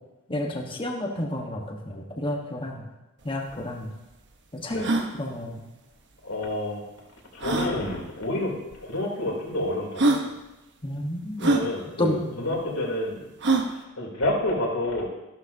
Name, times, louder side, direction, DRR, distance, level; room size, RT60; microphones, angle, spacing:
voice 1, 0.3-2.9 3.2-3.9 4.5-4.8 5.1-5.6 10.8-11.5 12.0-12.5, left 1 dB, 25° left, 0 dB, 1.4 m, -30 dB
sound 1, 3.2-3.3 3.5-3.6 4.1-4.2 4.7-5.1 6.4-6.5 7.4-7.7 8.7-8.8 9.5-9.6 10.0-10.3 11.4-11.7 13.4-13.7, right 2 dB, 55° right, 1.1 m, -23 dB
voice 2, 6.2-6.8 7.3-10.2 11.4-13.2 13.7-15.0, left 1 dB, 85° left, -2 dB, 3.4 m, -29 dB
14.5 x 12.0 x 2.8 m, 1.0 s
head